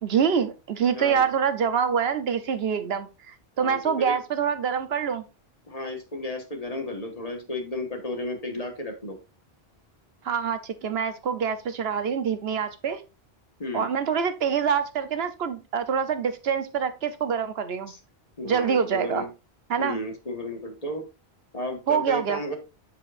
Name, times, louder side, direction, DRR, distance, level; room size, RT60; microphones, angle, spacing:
voice 1, 0.0-5.2 10.2-13.0 13.7-17.9 18.4-19.2 19.7-20.0 21.9-22.4, right 7 dB, 75° right, 11 dB, 1.0 m, -25 dB
voice 2, 0.9-1.2 3.6-4.2 5.7-9.2 13.6-13.9 17.9-18.0 18.4-19.3 19.8-21.0 21.5-22.6, left 1 dB, 35° left, 3 dB, 1.5 m, -33 dB
7.4 x 7.4 x 2.5 m, 0.28 s
omnidirectional pair, 1.1 m